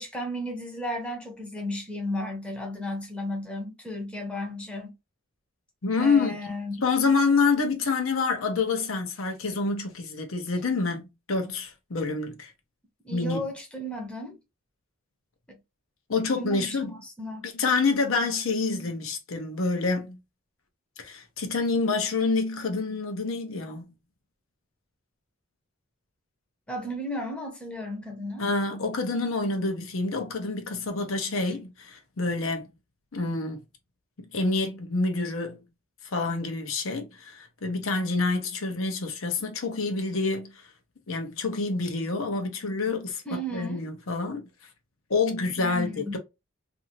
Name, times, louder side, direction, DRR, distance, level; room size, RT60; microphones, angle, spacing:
voice 1, 0.0-4.9 6.0-6.8 13.0-14.4 15.5-15.6 16.4-16.8 17.0-17.5 26.7-28.4 43.3-43.8 45.6-46.2, equal, 5° left, 0.7 m, -34 dB
voice 2, 5.8-6.3 6.8-12.5 13.1-13.5 16.1-17.0 17.4-20.2 21.0-23.9 28.4-32.7 33.1-33.6 34.3-35.6 36.1-40.5 41.1-43.2 43.5-44.5 45.1-46.2, left 3 dB, 75° left, 0.7 m, -27 dB
2.6 x 2.6 x 2.8 m
head